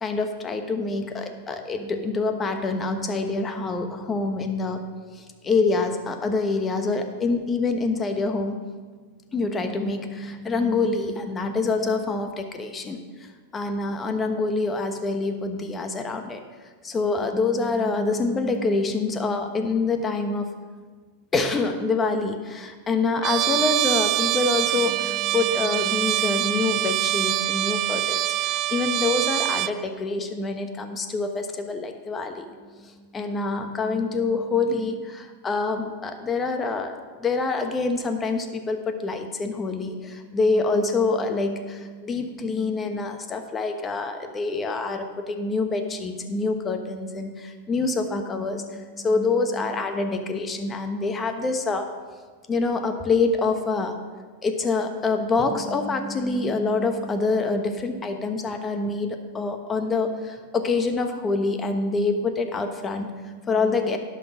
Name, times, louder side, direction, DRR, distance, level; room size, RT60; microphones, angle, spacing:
voice 1, 0.0-4.9 5.1-8.6 9.3-13.0 13.5-16.4 16.8-20.5 21.3-32.5 32.8-51.9 52.5-54.0 54.4-64.0, left 3 dB, 20° left, 6 dB, 1.1 m, -26 dB
Trumpet, 23.2-29.8, right 14 dB, 45° right, 0.4 m, -24 dB
11.0 x 5.9 x 6.1 m, 1.5 s
hypercardioid pair, 110°, 0 cm